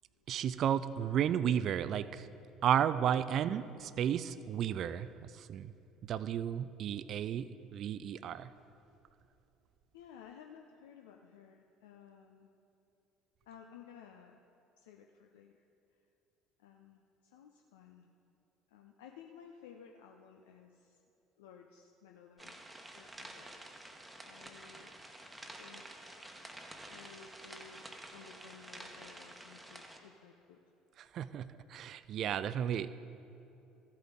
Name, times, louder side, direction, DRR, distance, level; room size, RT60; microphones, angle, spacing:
voice 1, 0.3-2.3 2.6-5.7 6.0-8.5 31.0-32.9, right 9 dB, 45° right, 15 dB, 0.3 m, -33 dB
voice 2, 9.9-12.5 13.4-14.4 14.8-15.6 16.6-18.1 18.7-21.0 21.4-23.6 24.2-24.9 25.5-26.1 26.9-30.6, left 7 dB, 65° left, 3 dB, 0.5 m, -56 dB
sound 1, 22.4-30.0, right 1 dB, 10° right, 1.1 m, -50 dB
14.5 x 8.5 x 3.7 m, 2.8 s
figure-of-eight pair, 60°, 0 cm